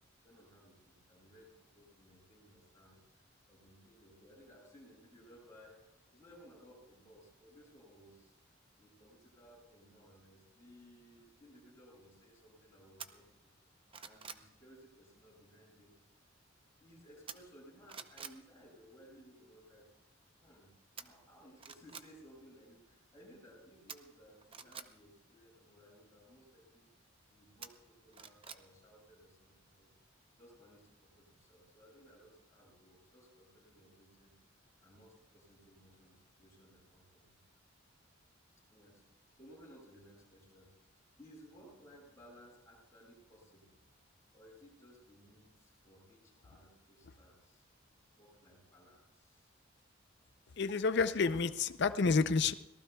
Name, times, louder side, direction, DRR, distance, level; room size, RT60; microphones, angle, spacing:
voice 1, 0.2-5.8 6.1-8.3 8.8-13.5 14.0-16.0 16.8-19.9 20.4-20.7 21.0-26.9 27.3-29.9 30.3-34.3 34.8-37.3 38.7-39.0 39.3-40.7 41.2-43.8 44.3-47.6 48.1-49.5, equal, 15° left, -6 dB, 7.4 m, -60 dB
sound 1, 13.0-13.1 13.6-14.5 17.3-17.6 17.9-18.4 21.0-21.1 21.6-22.1 23.9-24.9 27.6-28.6 29.0-29.1, right 6 dB, 25° right, 0.7 m, -47 dB
voice 2, 50.6-52.5, left 4 dB, 55° left, 11 dB, 0.6 m, -29 dB
25.0 x 18.5 x 2.3 m, 0.92 s
head